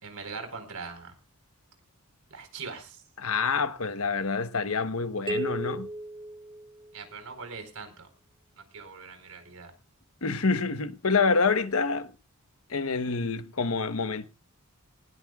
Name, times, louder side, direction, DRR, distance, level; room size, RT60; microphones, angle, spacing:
voice 1, 0.0-1.1 2.3-3.0 6.9-8.1 8.6-9.7, right 4 dB, 75° right, 4.4 m, -41 dB
voice 2, 3.2-5.9 10.2-12.1 12.7-14.3, left 4 dB, 65° left, 1.0 m, -27 dB
sound 1, 5.3-7.2, right 1 dB, 20° right, 1.6 m, -35 dB
19.5 x 18.5 x 2.4 m
head